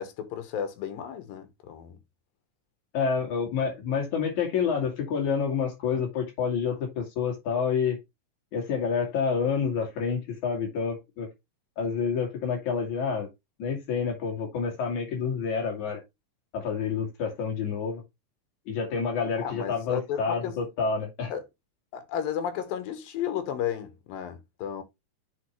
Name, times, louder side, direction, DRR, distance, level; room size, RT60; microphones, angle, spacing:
voice 1, 0.0-2.0 19.4-20.6 21.3-21.4 21.9-24.8, left 9 dB, 85° left, 2.8 m, -33 dB
voice 2, 2.9-8.0 8.5-11.3 11.8-13.3 13.6-16.0 16.5-18.0 18.7-21.3, left 6 dB, 60° left, 3.6 m, -28 dB
8.4 x 4.8 x 3.1 m
omnidirectional pair, 4.0 m